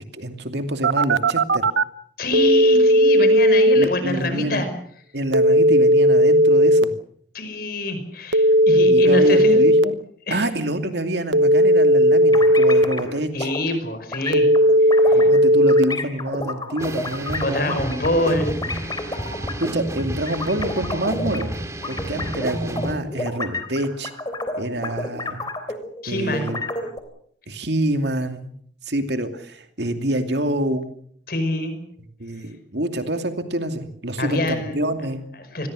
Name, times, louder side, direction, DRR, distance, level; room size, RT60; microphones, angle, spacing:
voice 1, 0.1-1.7 3.8-4.6 5.1-6.9 8.8-9.9 10.3-13.5 15.1-17.9 19.6-21.5 21.9-24.1 24.6-25.5 26.1-26.6 27.5-28.5 28.9-30.9 32.2-35.2, right 1 dB, 65° right, 7 dB, 2.6 m, -26 dB
Telephone, 0.8-1.8 2.3-3.8 5.3-6.8 8.3-9.8 11.3-12.8 14.3-15.8, equal, 90° right, 1.0 m, -15 dB
voice 2, 2.2-4.7 7.3-9.6 10.3-10.5 13.3-14.5 15.1-15.3 17.4-18.5 26.0-26.5 31.3-31.7 34.2-34.7 35.3-35.7, left 1 dB, 55° left, 9 dB, 5.3 m, -25 dB
sound 1, 12.3-13.1 13.4-13.6 14.1-15.4 15.7-21.5 21.8-26.0 26.3-27.0, left 2 dB, 20° left, 3.4 m, -30 dB
sound 2, 16.8-22.9, right 1 dB, 15° right, 2.1 m, -31 dB
27.5 x 21.0 x 6.4 m, 0.63 s
head